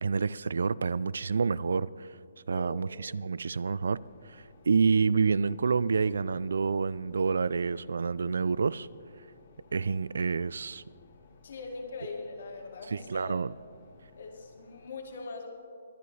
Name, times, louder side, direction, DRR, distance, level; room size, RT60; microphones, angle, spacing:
voice 1, 0.0-2.1 2.5-4.0 4.7-8.9 9.7-10.8 12.9-13.5, right 5 dB, 80° right, 21 dB, 0.3 m, -28 dB
sound 1, 3.8-14.9, left 4 dB, 40° left, 1.2 m, -58 dB
voice 2, 11.4-13.4 14.2-15.5, left 3 dB, 60° left, 1 dB, 2.2 m, -41 dB
22.5 x 9.3 x 3.3 m, 2.2 s
hypercardioid pair, 175°, 0 cm